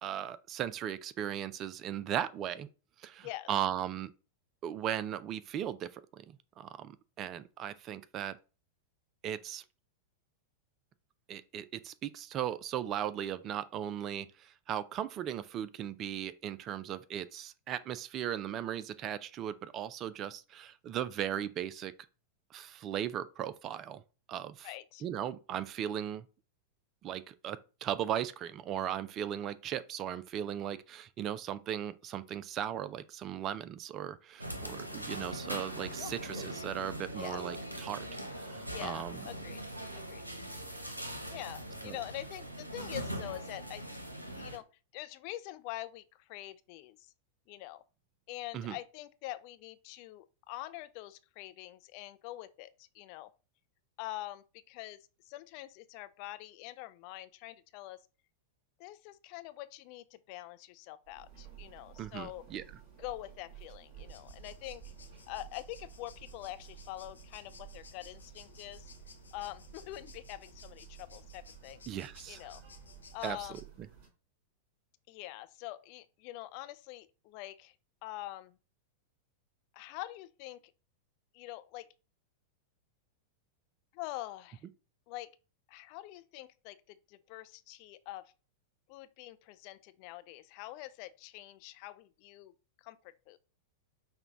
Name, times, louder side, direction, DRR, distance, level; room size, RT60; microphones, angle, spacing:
voice 1, 0.0-2.7 3.0-4.1 4.6-8.4 9.2-9.6 11.3-21.9 22.5-24.0 24.3-24.7 25.0-26.2 27.0-38.1 38.3-39.3 41.8-42.0 48.5-48.8 62.0-62.6 71.9-72.5 73.2-73.4, right 10 dB, 35° right, 0.4 m, -37 dB
voice 2, 24.6-25.0 36.0-36.6 37.2-37.4 38.7-39.6 39.9-40.2 41.3-43.8 44.4-44.7 44.9-47.1 47.5-47.8 48.3-53.3 54.0-58.0 58.8-62.4 63.0-64.9 65.3-68.9 69.3-71.8 72.3-72.6 73.1-73.6 75.1-77.7 78.0-78.6 79.7-80.7 81.3-81.9 83.9-84.6 85.1-85.3 85.7-88.3 88.9-92.5 92.8-93.4, left 16 dB, 45° left, 0.3 m, -45 dB
sound 1, 34.4-44.6, right 1 dB, 90° right, 0.7 m, -41 dB
sound 2, 61.0-74.1, right 11 dB, 50° right, 2.6 m, -54 dB
sound 3, 64.1-73.6, left 4 dB, 75° left, 0.7 m, -56 dB
5.7 x 2.2 x 3.6 m
figure-of-eight pair, 95°, 0 cm